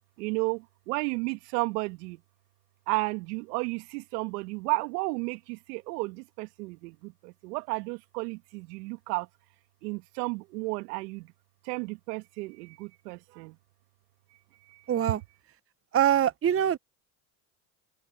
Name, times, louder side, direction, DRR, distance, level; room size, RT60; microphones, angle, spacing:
voice 1, 0.2-2.2 2.9-9.3 9.8-11.3 11.6-13.6 14.7-14.8, right 25 dB, 75° right, 1.9 m, -33 dB
voice 2, 14.9-15.2 15.9-16.8, right 10 dB, 30° right, 1.0 m, -23 dB
hypercardioid pair, 75°, 48 cm